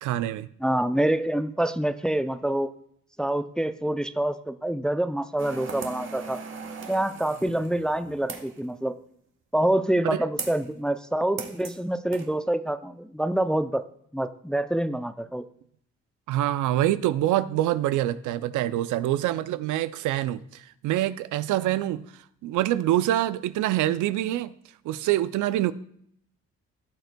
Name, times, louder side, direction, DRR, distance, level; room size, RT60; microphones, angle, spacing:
voice 1, 0.0-0.5 10.0-10.3 16.3-22.0 22.4-24.5 24.8-25.7, right 13 dB, 80° right, 0.5 m, -25 dB
voice 2, 0.6-2.7 3.2-6.4 6.9-8.9 9.5-13.8 14.1-15.4, right 1 dB, 5° left, 0.4 m, -26 dB
sound 1, 5.4-8.6 10.4-10.7 11.4-11.8 12.1-12.3, right 5 dB, 40° right, 1.1 m, -38 dB
16.0 x 6.6 x 2.2 m
cardioid pair, 90°, 30 cm